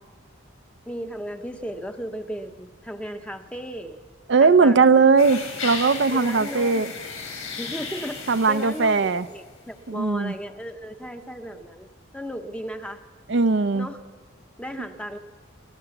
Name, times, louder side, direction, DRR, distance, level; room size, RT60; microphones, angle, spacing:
voice 1, 0.9-4.1 4.4-4.9 6.1-6.8 7.6-11.9 12.1-13.0 13.7-14.0 14.6-15.2, equal, 5° left, 7 dB, 0.8 m, -35 dB
voice 2, 4.3-6.9 8.3-9.3 9.9-10.3 13.3-13.9, right 4 dB, 55° right, 11 dB, 0.5 m, -19 dB
sound 1, 5.2-9.5, left 4 dB, 80° left, 5.6 m, -35 dB
28.5 x 13.5 x 7.1 m, 1.5 s
head